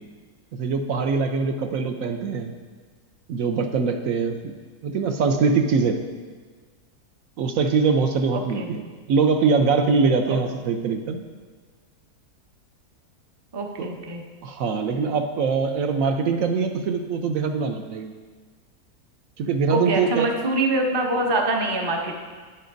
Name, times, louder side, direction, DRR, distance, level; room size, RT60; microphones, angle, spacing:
voice 1, 0.5-2.5 3.3-4.5 4.8-6.0 7.4-8.8 9.1-11.2 13.8-14.0 14.4-18.1 19.4-20.3, right 5 dB, 70° right, 6 dB, 1.0 m, -23 dB
voice 2, 8.3-8.7 10.3-10.4 13.5-14.2 19.7-22.2, right 2 dB, 30° right, 2 dB, 0.5 m, -25 dB
10.0 x 9.4 x 2.6 m, 1.5 s
omnidirectional pair, 1.6 m